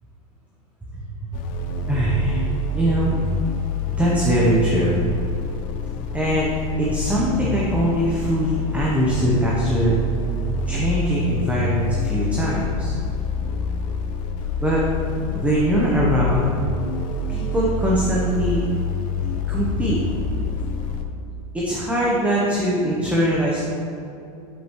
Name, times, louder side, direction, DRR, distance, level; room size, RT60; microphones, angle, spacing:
voice 1, 0.9-1.3 1.6-3.1 4.0-5.1 6.1-6.5 6.8-10.0 10.7-12.9 14.6-14.8 15.3-16.5 17.3-18.6 19.5-20.0 21.5-23.6, right 1 dB, 5° right, -5 dB, 0.8 m, -22 dB
sound 1, 1.3-21.0, left 3 dB, 40° left, 0.6 m, -26 dB
8.1 x 5.0 x 3.1 m, 2.7 s
supercardioid pair, 135°, 20 cm